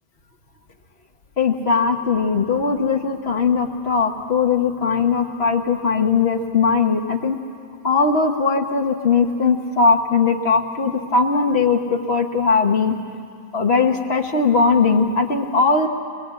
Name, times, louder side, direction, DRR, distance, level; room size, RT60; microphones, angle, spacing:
voice 1, 1.4-7.4 7.8-13.0 13.5-15.9, left 4 dB, 85° left, 3 dB, 1.5 m, -19 dB
22.0 x 21.0 x 8.3 m, 2.3 s
omnidirectional pair, 1.0 m